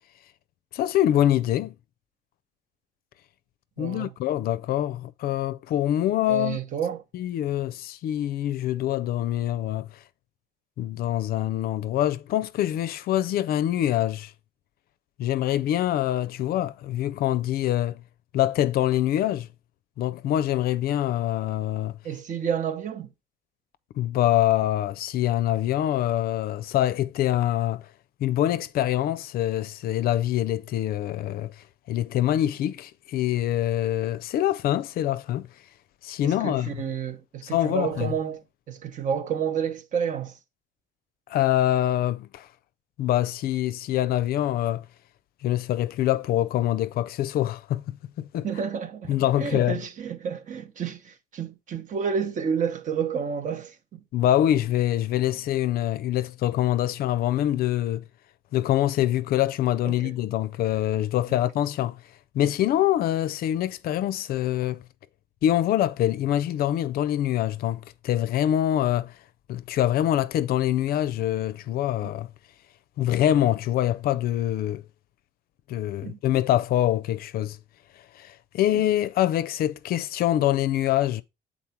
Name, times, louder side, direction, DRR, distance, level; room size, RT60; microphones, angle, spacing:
voice 1, 0.7-1.7 3.8-6.6 7.1-9.9 10.8-14.3 15.2-18.0 18.3-19.5 20.0-22.0 24.0-27.8 28.2-31.5 31.9-35.5 36.0-36.8 37.4-38.1 41.3-42.5 43.0-44.8 45.4-47.8 48.2-48.5 49.1-49.8 54.1-58.0 58.5-62.0 62.3-64.8 65.4-69.1 69.5-72.3 73.0-74.8 75.7-77.6 78.2-81.2, left 12 dB, 65° left, 0.4 m, -25 dB
voice 2, 3.8-4.1 6.3-7.0 22.0-23.1 36.2-40.3 48.4-54.0 59.8-60.1 61.3-61.4 72.0-72.1 76.0-76.2, right 7 dB, 50° right, 1.0 m, -30 dB
7.2 x 4.1 x 4.4 m
cardioid pair, 110°, 17 cm